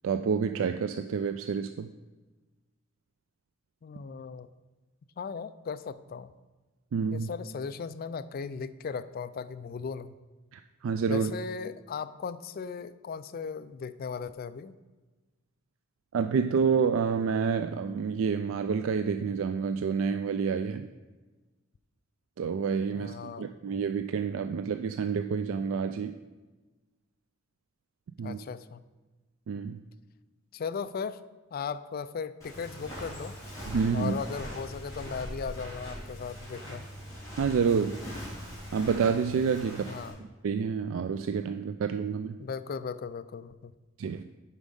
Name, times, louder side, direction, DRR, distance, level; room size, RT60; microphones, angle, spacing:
voice 1, 0.0-1.9 6.9-7.3 10.5-11.3 16.1-20.9 22.4-26.1 28.2-28.4 29.5-29.8 33.7-34.1 37.4-38.0 38.7-39.9 40.4-42.4 44.0-44.2, right 6 dB, 90° right, 9 dB, 0.3 m, -28 dB
voice 2, 3.8-4.5 5.2-6.3 7.1-10.1 11.1-14.8 22.9-23.5 28.2-28.8 30.5-31.2 31.5-33.4 33.9-36.8 39.8-40.2 42.4-43.7, left 5 dB, 50° left, 13 dB, 0.4 m, -37 dB
Walk footsteps, 32.4-40.1, equal, 15° left, 3.1 m, -41 dB
8.3 x 5.3 x 5.3 m, 1.2 s
head